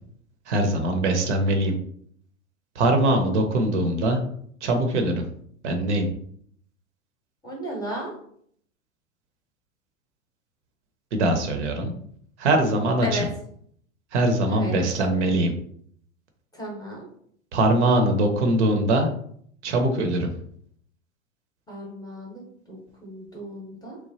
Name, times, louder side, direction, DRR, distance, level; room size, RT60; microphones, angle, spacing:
voice 1, 0.5-1.7 2.8-4.2 4.6-5.2 5.6-6.1 11.1-11.9 12.4-13.3 14.1-15.5 17.5-19.1 19.6-20.3, right 1 dB, 60° right, 4 dB, 0.6 m, -22 dB
voice 2, 7.4-8.1 13.0-13.3 14.5-14.8 16.5-17.1 21.7-24.0, equal, 10° left, -2 dB, 0.8 m, -34 dB
3.0 x 2.1 x 2.7 m, 0.64 s
figure-of-eight pair, 90°, 40 cm